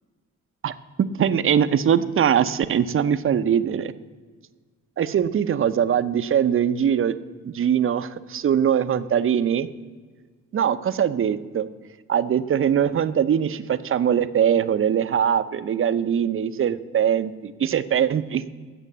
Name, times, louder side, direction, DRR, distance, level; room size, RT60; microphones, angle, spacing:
voice 1, 1.2-3.9 5.0-7.1 7.4-9.7 10.5-11.7 12.1-18.4, right 8 dB, 45° right, 13 dB, 0.7 m, -22 dB
12.5 x 7.5 x 7.3 m, 1.5 s
cardioid pair, 90°, 30 cm